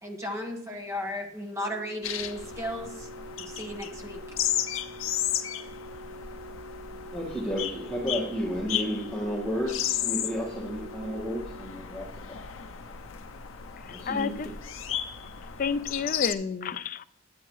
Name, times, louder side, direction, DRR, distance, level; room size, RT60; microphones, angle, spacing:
voice 1, 0.0-3.1 3.4-4.2, left 1 dB, 15° right, 1.2 m, -35 dB
Organ, 1.6-12.4 13.6-13.8, right 1 dB, 55° right, 1.4 m, -46 dB
sound 1, 2.0-16.3, left 10 dB, 90° left, 0.6 m, -34 dB
voice 2, 7.1-12.4 13.8-14.3, equal, 5° left, 1.7 m, -32 dB
voice 3, 13.9-14.5 14.9-15.0 15.6-17.0, left 5 dB, 45° left, 0.3 m, -30 dB
10.5 x 8.9 x 3.1 m
head